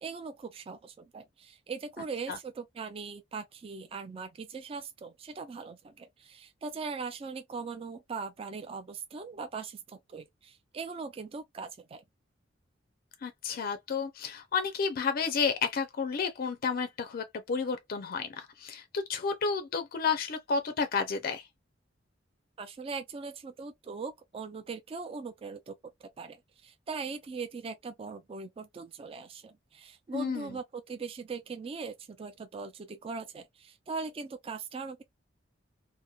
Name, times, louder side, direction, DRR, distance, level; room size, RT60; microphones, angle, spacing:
voice 1, 0.0-12.0 22.6-25.7 26.0-35.0, right 4 dB, 30° right, 0.3 m, -40 dB
voice 2, 13.2-21.5 30.1-30.5, left 5 dB, 50° left, 0.4 m, -31 dB
2.7 x 2.0 x 2.3 m
head